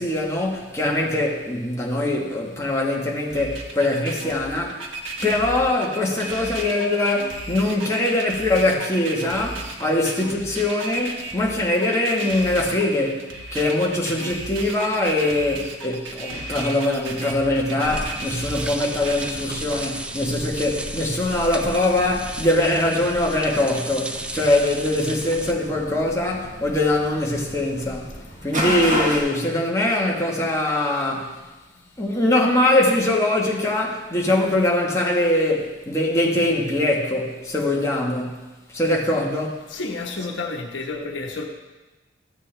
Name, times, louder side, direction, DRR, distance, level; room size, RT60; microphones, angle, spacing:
voice 1, 0.0-4.8 5.2-28.1 28.4-31.4 32.0-39.6, left 1 dB, 15° left, 1.3 m, -22 dB
sound 1, 3.3-19.3, right 2 dB, 90° right, 1.2 m, -34 dB
sound 2, 17.8-25.5, right 1 dB, 5° right, 0.4 m, -35 dB
sound 3, 17.8-29.2, equal, 40° right, 1.6 m, -33 dB
voice 2, 39.7-41.4, left 3 dB, 70° left, 1.1 m, -30 dB
13.0 x 8.1 x 3.3 m
head